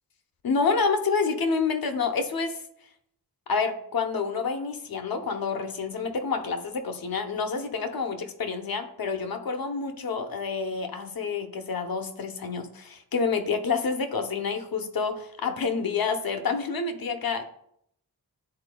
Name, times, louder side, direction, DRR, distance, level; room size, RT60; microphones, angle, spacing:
voice 1, 0.4-2.6 3.5-17.4, left 5 dB, 65° left, 6 dB, 0.8 m, -28 dB
11.0 x 4.2 x 2.2 m, 0.72 s
wide cardioid pair, 110°, 38 cm